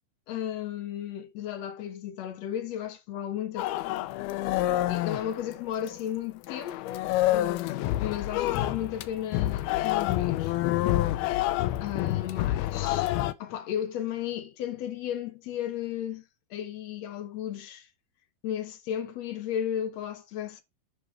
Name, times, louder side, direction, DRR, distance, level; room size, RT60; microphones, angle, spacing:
voice 1, 0.3-4.1 4.9-10.5 11.8-13.1 13.4-16.2 16.5-17.9 18.4-20.6, left 10 dB, 70° left, 1.7 m, -34 dB
sound 1, 3.6-6.1 6.5-13.3, left 15 dB, 90° left, 2.6 m, -28 dB
10.0 x 5.1 x 4.6 m
omnidirectional pair, 4.3 m